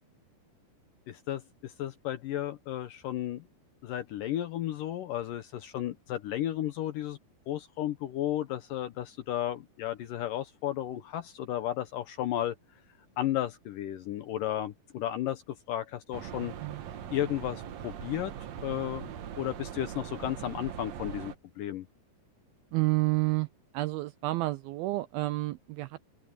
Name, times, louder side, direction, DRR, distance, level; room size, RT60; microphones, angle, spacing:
voice 1, 1.1-3.5 3.8-7.2 7.5-12.8 13.2-16.5 17.1-18.3 18.6-21.9, left 12 dB, 75° left, 2.1 m, -33 dB
sound 1, 16.1-21.3, right 9 dB, 70° right, 1.7 m, -41 dB
voice 2, 22.7-23.5 23.7-26.1, right 19 dB, 85° right, 2.2 m, -30 dB
open air
omnidirectional pair, 4.8 m